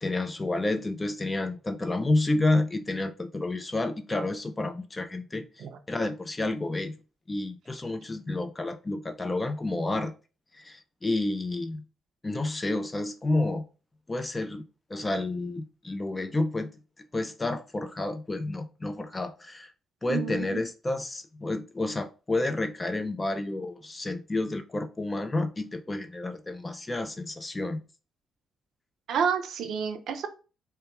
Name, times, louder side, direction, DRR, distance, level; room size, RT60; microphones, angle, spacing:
voice 1, 0.0-7.0 7.3-10.1 10.5-11.8 12.2-13.7 14.1-14.6 14.9-16.7 17.1-19.7 20.0-27.8, left 2 dB, 20° left, 0.3 m, -30 dB
voice 2, 20.1-20.6 29.1-30.3, right 7 dB, 70° right, 0.4 m, -29 dB
2.2 x 2.2 x 2.9 m
cardioid pair, 90°, 0 cm